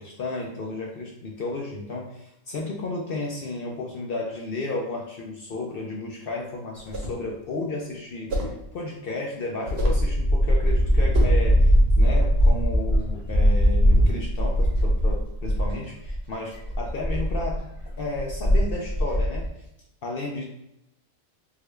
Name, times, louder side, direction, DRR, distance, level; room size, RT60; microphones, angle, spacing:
voice 1, 0.0-17.6 18.0-19.4 20.0-20.4, left 2 dB, 65° left, -1 dB, 0.5 m, -33 dB
sound 1, 6.8-7.2 8.3-8.6 9.7-10.1 11.1-11.5, equal, 55° right, 0.9 m, -29 dB
sound 2, 9.8-15.7 16.0-16.2 16.5-19.5, equal, 40° left, 1.2 m, -20 dB
3.6 x 2.2 x 3.1 m, 0.84 s
omnidirectional pair, 1.4 m